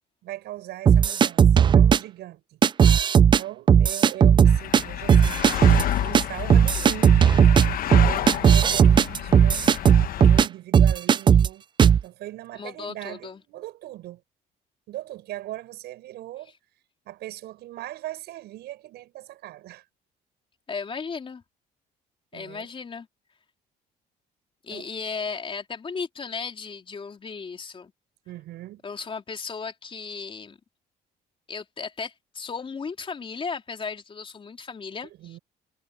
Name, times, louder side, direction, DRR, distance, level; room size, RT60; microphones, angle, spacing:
voice 1, 0.2-2.6 3.3-7.2 7.9-9.7 10.1-11.6 11.9-14.2 14.9-16.5 17.1-19.8 22.3-22.7 24.7-24.9 28.3-28.8 35.2-35.4, right 15 dB, 80° right, 7.4 m, -39 dB
sound 1, 0.9-2.0 2.6-3.4 3.7-4.8 5.1-5.8 6.1-6.2 6.5-10.5 10.7-11.5 11.8-12.0, right 8 dB, 30° right, 0.3 m, -16 dB
sound 2, 4.5-10.5, left 11 dB, 60° left, 1.1 m, -30 dB
voice 2, 8.2-8.8 12.5-13.4 20.7-21.4 22.3-23.1 24.6-27.9 28.8-30.6 31.5-35.4, left 5 dB, 30° left, 4.0 m, -35 dB
cardioid pair, 110°, 17 cm